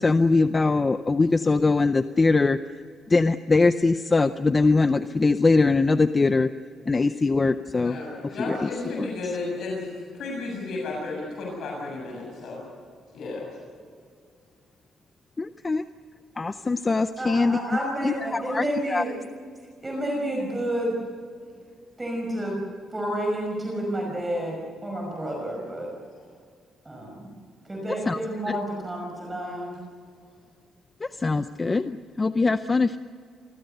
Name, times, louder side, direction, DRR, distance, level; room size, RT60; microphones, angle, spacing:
voice 1, 0.0-2.6 3.1-6.5 6.9-8.0 8.4-8.7 9.0-9.1 15.4-15.8 16.4-19.0 28.1-28.2 28.5-28.6 31.0-33.0, left 3 dB, 20° left, 10 dB, 0.5 m, -22 dB
voice 2, 7.8-12.6 13.1-13.4, left 3 dB, 55° left, -2 dB, 7.1 m, -33 dB
voice 3, 17.2-19.1 19.8-21.0 22.0-22.6 22.9-25.9 26.9-27.3 27.6-29.8, right 1 dB, 15° right, -1 dB, 5.5 m, -30 dB
27.5 x 21.0 x 6.8 m, 2.1 s
cardioid pair, 170°, 0 cm